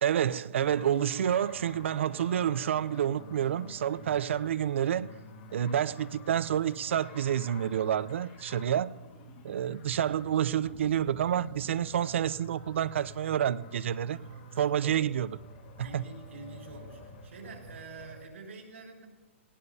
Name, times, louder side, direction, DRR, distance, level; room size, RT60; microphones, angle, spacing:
voice 1, 0.0-5.1 5.5-8.9 9.4-14.2 14.6-15.4 15.8-16.0, right 10 dB, 65° right, 0.5 m, -29 dB
sound 1, 0.6-18.2, left 1 dB, 40° left, 1.7 m, -49 dB
voice 2, 8.3-9.1 14.1-15.0 15.8-19.1, right 3 dB, 85° right, 5.7 m, -48 dB
18.5 x 17.5 x 2.8 m
hypercardioid pair, 170°, 7 cm